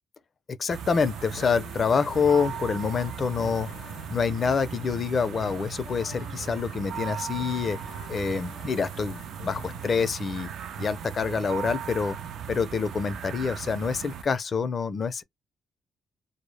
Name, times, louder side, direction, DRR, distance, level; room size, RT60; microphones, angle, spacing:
voice 1, 0.6-3.7 4.1-7.8 8.1-10.5 10.8-12.2 12.5-15.2, left 5 dB, 40° left, 0.4 m, -27 dB
sound 1, 0.7-14.2, right 8 dB, 70° right, 0.4 m, -38 dB
sound 2, 1.1-10.3, left 6 dB, 85° left, 0.6 m, -47 dB
2.0 x 2.0 x 3.2 m
cardioid pair, 90°, 0 cm